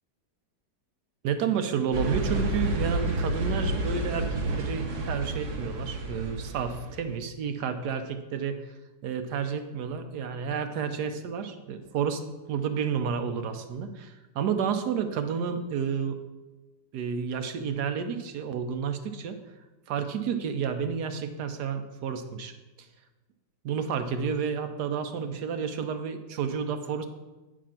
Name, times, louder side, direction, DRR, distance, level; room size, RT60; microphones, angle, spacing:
voice 1, 1.2-8.8 9.0-12.2 12.5-16.2 16.9-19.4 19.9-22.5 23.6-27.1, right 6 dB, 75° right, 8 dB, 1.3 m, -30 dB
sound 1, 1.9-7.1, right 2 dB, 50° right, 1.1 m, -30 dB
8.8 x 5.0 x 5.7 m, 1.1 s
omnidirectional pair, 1.8 m